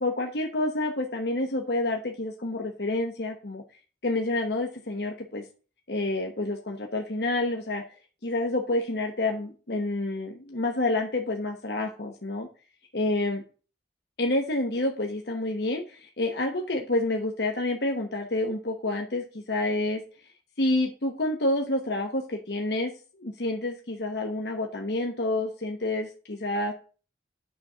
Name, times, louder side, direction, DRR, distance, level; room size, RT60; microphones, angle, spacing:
voice 1, 0.0-3.6 4.0-5.4 5.9-7.8 8.2-12.5 12.9-13.4 14.2-20.0 20.6-22.9 23.2-26.7, left 2 dB, 60° left, 2 dB, 1.1 m, -28 dB
9.5 x 4.3 x 6.2 m, 0.37 s
head